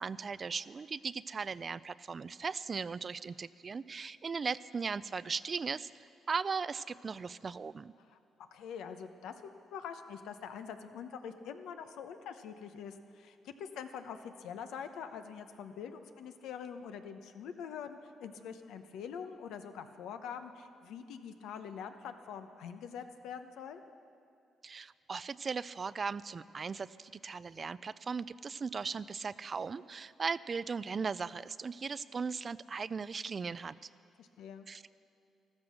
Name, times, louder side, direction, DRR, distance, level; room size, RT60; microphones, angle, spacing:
voice 1, 0.0-5.9 6.3-7.9 24.6-33.7 34.7-34.9, right 5 dB, 40° right, 17 dB, 0.3 m, -38 dB
voice 2, 8.5-23.8 34.2-34.7, left 7 dB, 85° left, 8 dB, 0.9 m, -44 dB
13.5 x 13.5 x 6.3 m, 2.4 s
cardioid pair, 90°, 0 cm